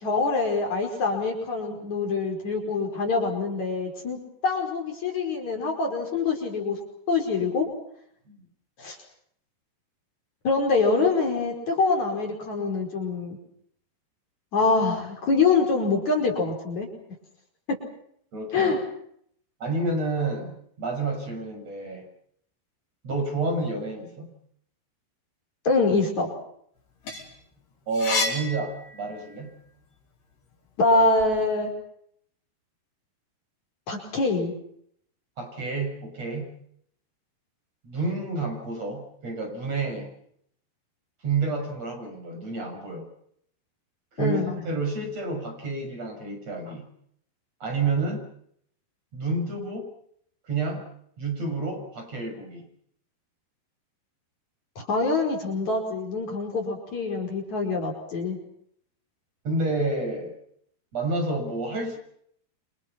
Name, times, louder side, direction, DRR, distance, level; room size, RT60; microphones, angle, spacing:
voice 1, 0.0-6.8 7.1-7.7 8.8-9.0 10.4-13.4 14.5-16.9 17.7-17.8 18.5-18.8 25.6-26.3 30.8-31.7 33.9-34.5 44.2-44.6 54.8-58.4, left 3 dB, 45° left, 2 dB, 6.3 m, -25 dB
voice 2, 18.3-18.8 19.6-20.5 20.8-22.1 23.0-24.3 27.9-29.5 35.4-36.5 37.8-40.1 41.2-43.1 44.2-46.8 47.6-48.2 49.1-49.9 50.5-50.8 51.2-52.7 59.4-60.3 60.9-62.0, right 3 dB, 40° right, 3 dB, 7.5 m, -29 dB
sound 1, 26.8-29.5 29.9-31.3, left 3 dB, 80° left, 7.7 m, -32 dB
29.0 x 26.5 x 6.1 m, 0.69 s
omnidirectional pair, 4.7 m